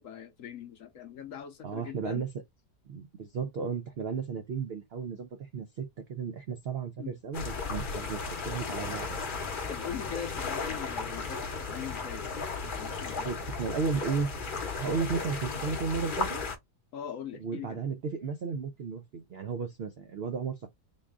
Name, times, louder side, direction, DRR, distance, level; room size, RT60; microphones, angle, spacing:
voice 1, 0.0-2.2 7.0-7.2 9.7-13.3 16.9-17.8, left 9 dB, 65° left, 0.9 m, -41 dB
voice 2, 1.6-2.3 2.9-9.2 13.2-14.3 14.7-16.4 17.4-20.7, right 5 dB, 85° right, 0.5 m, -34 dB
sound 1, 7.3-16.6, left 4 dB, 40° left, 0.8 m, -35 dB
3.9 x 2.4 x 3.5 m
omnidirectional pair, 1.8 m